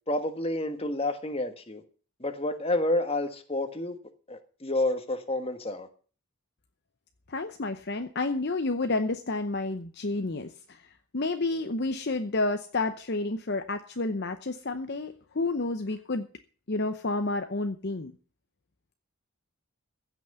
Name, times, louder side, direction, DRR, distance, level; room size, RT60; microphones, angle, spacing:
voice 1, 0.1-1.8 2.2-4.0 4.3-5.9, left 1 dB, 25° left, 1.4 m, -29 dB
voice 2, 7.3-16.3 16.7-18.1, left 2 dB, 45° left, 0.8 m, -30 dB
15.5 x 6.1 x 8.1 m
head